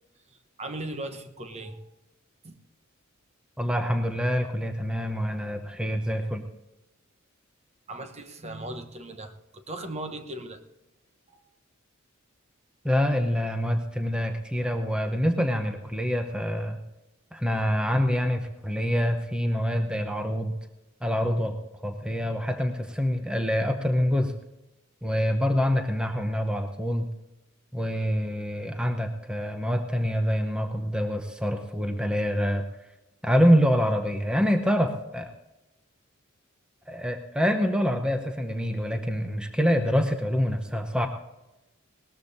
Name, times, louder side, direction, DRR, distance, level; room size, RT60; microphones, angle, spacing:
voice 1, 0.6-1.8 2.4-2.6 7.9-10.6 11.3-11.4, right 1 dB, 30° right, 7 dB, 1.0 m, -38 dB
voice 2, 3.6-6.5 12.8-16.8 17.3-20.5 21.0-21.6 21.8-24.3 25.0-27.1 27.7-32.6 33.2-35.3 36.9-41.1, equal, 5° right, 5 dB, 0.8 m, -26 dB
19.5 x 13.5 x 2.7 m, 0.97 s
head